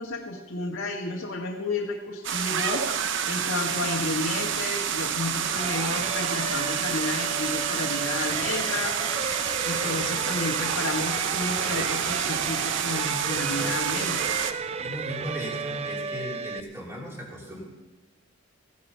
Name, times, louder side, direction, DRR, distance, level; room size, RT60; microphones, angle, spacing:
voice 1, 0.0-9.1 9.6-14.4, left 2 dB, 80° left, -3 dB, 1.6 m, -32 dB
sound 1, 2.2-14.5, right 8 dB, 60° right, 0.8 m, -28 dB
sound 2, 5.5-16.6, right 5 dB, 30° right, 0.4 m, -33 dB
voice 2, 14.8-17.6, equal, 15° right, -4 dB, 3.4 m, -36 dB
16.5 x 10.5 x 5.6 m, 1.2 s
head